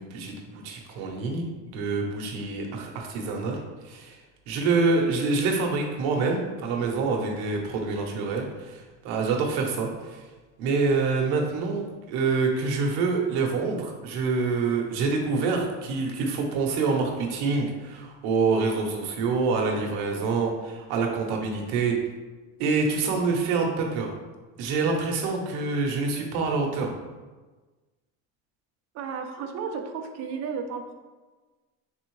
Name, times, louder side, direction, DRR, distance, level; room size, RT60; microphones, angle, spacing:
voice 1, 0.0-3.6 3.8-4.2 4.5-10.2 10.6-22.0 22.6-24.1 24.6-26.9, right 4 dB, 65° right, 1 dB, 0.9 m, -26 dB
voice 2, 28.9-30.9, right 6 dB, 45° right, 5 dB, 0.5 m, -33 dB
4.0 x 3.4 x 3.1 m, 1.3 s
cardioid pair, 145°, 39 cm